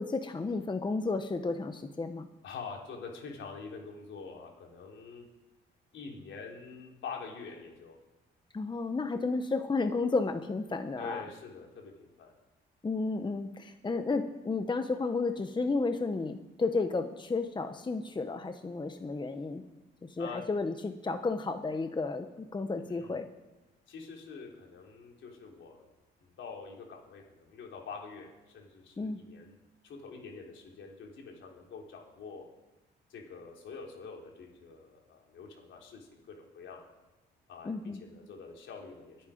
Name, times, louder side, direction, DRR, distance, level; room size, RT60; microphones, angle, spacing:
voice 1, 0.0-2.3 8.5-11.3 12.8-19.6 20.0-23.3 29.0-29.2 37.6-38.0, left 3 dB, 25° left, 8 dB, 1.0 m, -32 dB
voice 2, 2.4-5.3 5.9-8.0 11.0-12.3 20.2-20.4 22.8-23.2 23.9-25.9 26.2-29.5 29.8-32.5 33.1-36.9 37.5-37.7 38.0-39.2, left 5 dB, 70° left, 0 dB, 3.7 m, -45 dB
23.0 x 8.7 x 5.1 m, 1.1 s
cardioid pair, 90°, 20 cm